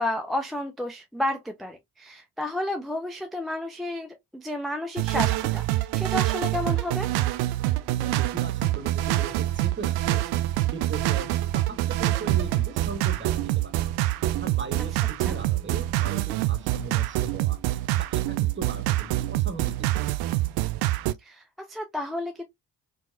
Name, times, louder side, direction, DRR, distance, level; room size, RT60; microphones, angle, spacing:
voice 1, 0.0-7.1 15.2-15.4 21.2-22.4, left 1 dB, ahead, 0.4 m, -31 dB
sound 1, 5.0-21.1, right 16 dB, 55° right, 0.5 m, -25 dB
voice 2, 8.0-10.2 10.6-13.7 14.4-17.6 18.0-20.1, right 3 dB, 25° right, 0.9 m, -38 dB
4.4 x 2.0 x 2.5 m
figure-of-eight pair, 40°, 48 cm